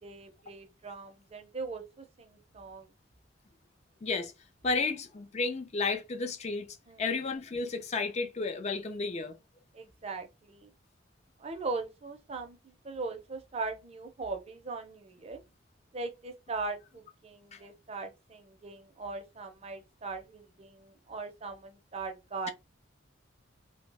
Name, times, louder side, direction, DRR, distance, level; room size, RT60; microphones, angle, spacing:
voice 1, 0.0-2.9 6.9-7.1 9.7-10.7 11.4-15.4 15.9-22.5, right 3 dB, 30° right, 0.5 m, -40 dB
voice 2, 4.0-4.3 4.6-6.7 7.0-9.4 17.5-17.6, left 4 dB, 35° left, 0.4 m, -32 dB
2.7 x 2.1 x 3.2 m
head